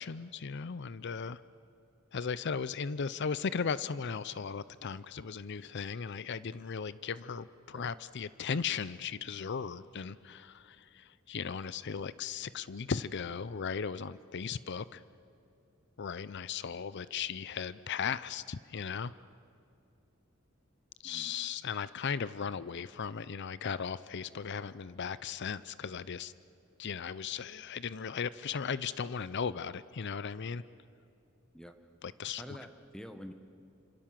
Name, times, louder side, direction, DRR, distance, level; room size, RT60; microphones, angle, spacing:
voice 1, 0.0-1.4 2.1-15.0 16.0-19.1 21.0-26.3 26.8-30.6 32.0-32.6, left 6 dB, 55° left, 16 dB, 0.5 m, -37 dB
voice 2, 32.4-33.3, equal, 5° left, 7 dB, 1.1 m, -47 dB
28.0 x 26.5 x 7.5 m, 2.6 s
head